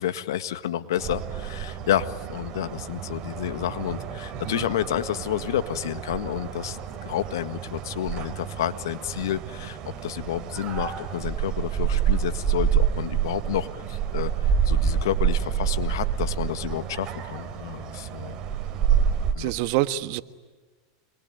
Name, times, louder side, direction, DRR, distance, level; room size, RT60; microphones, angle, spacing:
voice 1, 0.0-18.4 19.3-19.5, left 11 dB, 85° left, 12 dB, 1.7 m, -30 dB
sound 1, 1.0-19.3, right 8 dB, 35° right, 3.4 m, -28 dB
voice 2, 19.4-20.2, right 15 dB, 55° right, 12 dB, 1.5 m, -26 dB
27.0 x 22.5 x 9.3 m, 1.3 s
supercardioid pair, 135°, 2 cm